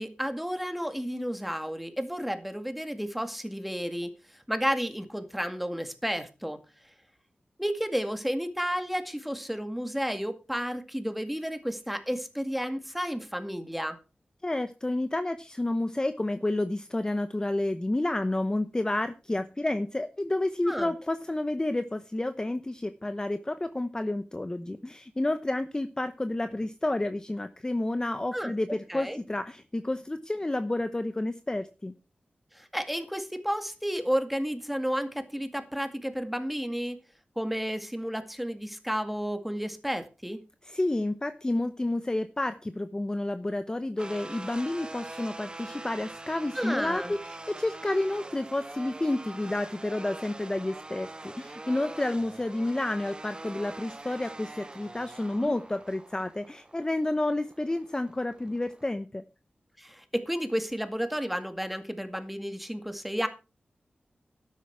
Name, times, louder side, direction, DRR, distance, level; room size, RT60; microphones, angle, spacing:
voice 1, 0.0-4.1 4.5-6.6 7.6-14.0 20.7-20.9 28.3-28.5 28.9-29.2 32.5-37.0 37.4-40.4 46.5-47.1 55.4-55.5 59.8-63.3, equal, 5° right, 2.0 m, -32 dB
voice 2, 14.4-31.9 40.6-59.2, left 2 dB, 20° left, 0.8 m, -30 dB
sound 1, 44.0-58.8, right 2 dB, 25° right, 1.0 m, -44 dB
12.5 x 10.5 x 4.7 m
wide cardioid pair, 90°, 3 cm